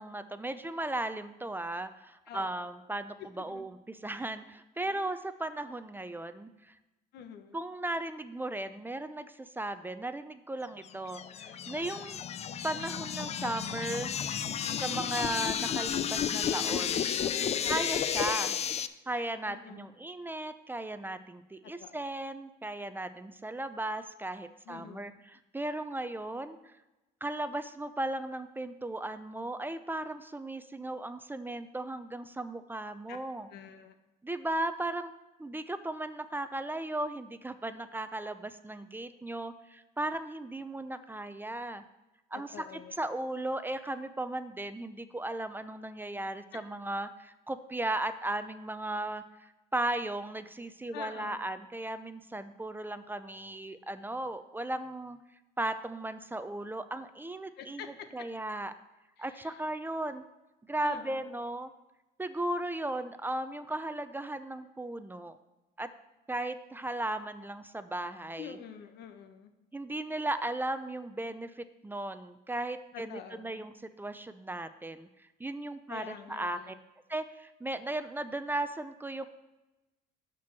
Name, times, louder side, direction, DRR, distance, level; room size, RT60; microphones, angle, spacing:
voice 1, 0.0-6.7 7.5-12.2 12.6-14.1 14.7-17.2 17.7-18.6 19.1-26.7 27.2-33.5 34.2-35.1 35.4-41.8 42.3-42.6 43.0-55.2 55.6-58.7 59.2-60.2 60.7-61.7 62.2-65.4 65.8-65.9 66.3-68.6 69.7-76.7 77.1-79.3, right 1 dB, 10° right, 11 dB, 0.5 m, -36 dB
voice 2, 2.3-2.7 3.2-3.7 4.8-5.1 7.1-7.6 14.7-15.1 17.6-17.7 19.4-19.9 21.6-22.0 24.6-25.2 33.1-33.2 33.5-33.9 42.3-43.0 46.5-46.6 50.9-51.4 57.6-58.3 59.2-59.6 60.8-61.4 68.4-69.5 72.9-73.6 75.9-76.8, left 8 dB, 75° left, 8 dB, 1.1 m, -47 dB
sound 1, 10.9-18.9, left 8 dB, 40° left, 0.5 m, -32 dB
12.0 x 4.5 x 6.0 m, 1.0 s
cardioid pair, 110°, 17 cm